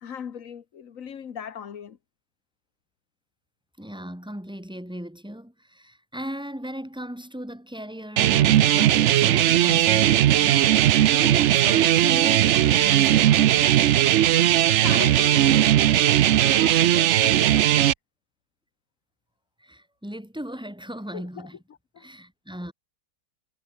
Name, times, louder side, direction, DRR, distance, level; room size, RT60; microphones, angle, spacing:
voice 1, 0.0-2.0 14.6-16.0 16.3-17.8 21.1-21.5 21.9-22.1, left 8 dB, 50° left, 1.6 m, -38 dB
voice 2, 3.8-13.7 19.6-21.6 22.0-22.7, equal, ahead, 4.0 m, -37 dB
sound 1, 8.2-17.9, right 12 dB, 90° right, 0.6 m, -18 dB
omnidirectional pair, 1.9 m